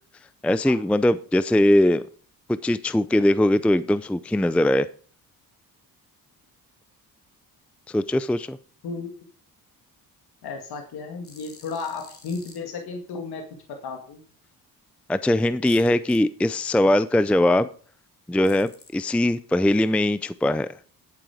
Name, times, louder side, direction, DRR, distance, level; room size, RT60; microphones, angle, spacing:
voice 1, 0.4-2.0 2.5-4.9 7.9-8.6 15.1-17.7 18.3-20.7, left 1 dB, 5° left, 15 dB, 0.4 m, -21 dB
voice 2, 10.4-13.4 13.7-14.2, left 4 dB, 80° left, 4 dB, 2.1 m, -34 dB
sound 1, 11.2-12.6 15.7-16.2 18.4-18.9, left 4 dB, 35° left, 3.1 m, -49 dB
10.5 x 9.0 x 5.0 m, 0.44 s
cardioid pair, 105°, 38 cm